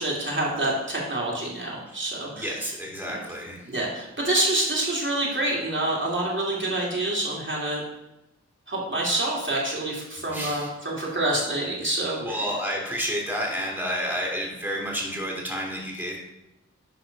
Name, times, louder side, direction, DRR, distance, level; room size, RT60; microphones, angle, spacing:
voice 1, 0.0-2.5 3.1-3.2 3.7-7.8 8.7-12.4, right 1 dB, 45° right, -4 dB, 2.5 m, -27 dB
voice 2, 2.4-3.7 10.3-10.7 12.2-16.2, equal, 5° right, -2 dB, 2.4 m, -30 dB
11.0 x 4.2 x 5.2 m, 0.90 s
wide cardioid pair, 75°, 29 cm